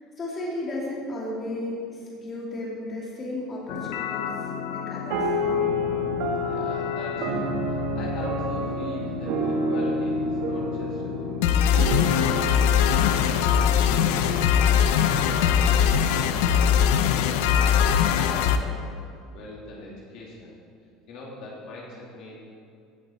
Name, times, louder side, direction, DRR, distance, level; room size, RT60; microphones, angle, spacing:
voice 1, 0.2-4.3 4.7-5.3 5.9-6.0, left 1 dB, 25° left, -5 dB, 2.7 m, -34 dB
sound 1, 3.7-18.6, left 8 dB, 85° left, 0.7 m, -24 dB
sound 2, 5.1-14.8, equal, 65° right, 1.4 m, -29 dB
voice 2, 6.4-20.5 21.1-22.4, left 2 dB, 55° left, -4 dB, 2.3 m, -42 dB
15.5 x 8.2 x 4.4 m, 2.4 s
cardioid pair, 165°, 0 cm